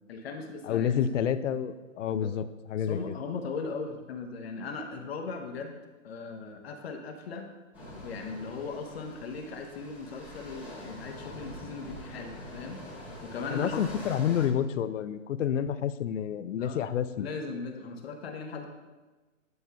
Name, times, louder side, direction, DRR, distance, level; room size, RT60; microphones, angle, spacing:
voice 1, 0.1-1.0 2.1-2.3 2.8-5.8 6.0-7.5 7.9-12.8 13.2-13.8 16.5-16.8 17.2-18.7, left 4 dB, 50° left, 3 dB, 0.8 m, -38 dB
voice 2, 0.6-3.2 13.5-17.3, left 9 dB, 65° left, 13 dB, 0.5 m, -29 dB
sound 1, 7.7-14.5, left 1 dB, 5° right, 1.2 m, -44 dB
9.4 x 5.3 x 2.3 m, 1.2 s
hypercardioid pair, 140°, 40 cm